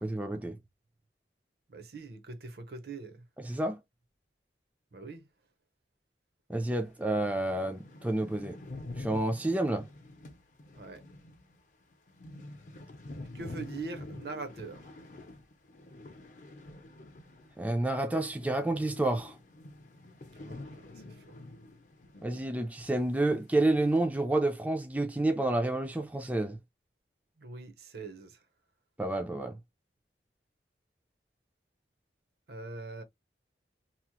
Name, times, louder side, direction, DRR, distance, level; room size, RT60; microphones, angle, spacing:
voice 1, 0.0-0.6 3.4-3.8 6.5-8.6 9.0-9.8 17.6-19.3 22.2-26.6 29.0-29.6, right 2 dB, 10° right, 0.4 m, -29 dB
voice 2, 1.7-3.2 4.9-5.3 10.7-11.0 13.3-14.9 20.4-20.9 21.3-21.4 27.4-28.4 32.5-33.0, right 3 dB, 60° right, 0.7 m, -42 dB
sound 1, 6.9-7.0 7.3-7.4 7.5-17.8 18.0-22.5 22.8-22.9 23.5-24.0, left 2 dB, 45° left, 0.6 m, -47 dB
2.9 x 2.1 x 2.9 m
head